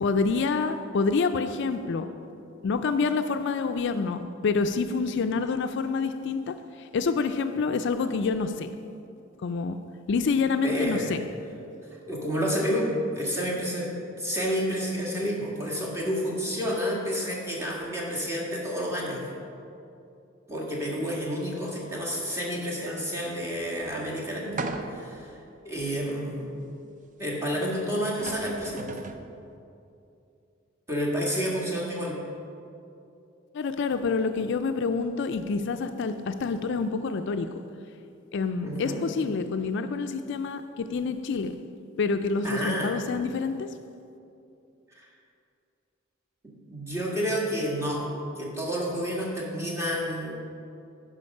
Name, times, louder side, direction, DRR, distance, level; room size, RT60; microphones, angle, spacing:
voice 1, 0.0-2.1 2.6-8.7 9.4-9.8 10.1-11.3 33.5-37.5 38.3-41.5 42.0-43.7, left 4 dB, 60° left, 9 dB, 0.4 m, -27 dB
voice 2, 10.6-11.2 12.1-19.2 20.5-25.4 25.6-26.6 27.2-28.9 30.9-32.2 38.6-39.0 42.4-42.9 45.0-45.1 46.7-48.1 48.4-50.3, equal, 15° right, -4 dB, 1.7 m, -30 dB
sound 1, 24.6-25.2 25.8-25.9 27.7-27.8 28.1-29.3, right 3 dB, 40° right, 0.5 m, -36 dB
11.0 x 5.1 x 5.4 m, 2.6 s
head